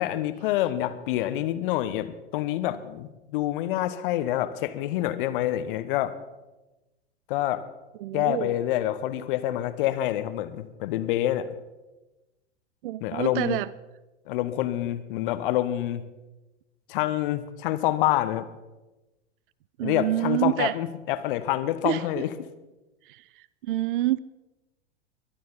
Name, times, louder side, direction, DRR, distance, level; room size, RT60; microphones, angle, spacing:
voice 1, 0.0-6.1 7.3-7.6 8.1-11.5 13.0-13.6 14.3-16.0 16.9-18.5 19.8-22.3, left 13 dB, 50° left, 13 dB, 1.2 m, -27 dB
voice 2, 8.0-8.6 12.8-13.7 19.8-20.8 21.8-22.2 23.1-24.2, right 15 dB, 50° right, 20 dB, 0.5 m, -28 dB
21.0 x 12.5 x 4.1 m, 1.1 s
figure-of-eight pair, 90°, 34 cm